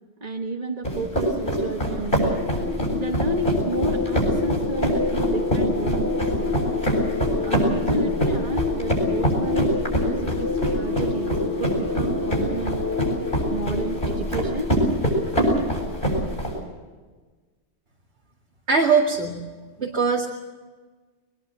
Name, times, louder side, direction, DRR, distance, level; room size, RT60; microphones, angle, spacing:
voice 1, 0.2-2.5 2.9-6.7 7.4-12.9 13.5-14.7, right 3 dB, 40° right, 1 dB, 1.4 m, -31 dB
sound 1, 0.8-16.5, right 1 dB, 55° left, 7.8 m, -25 dB
sound 2, 2.1-16.4, left 4 dB, 80° left, 2.8 m, -28 dB
voice 2, 18.7-19.4 19.8-20.3, right 5 dB, 75° right, -1 dB, 2.5 m, -20 dB
22.5 x 21.0 x 7.7 m, 1.3 s
omnidirectional pair, 1.1 m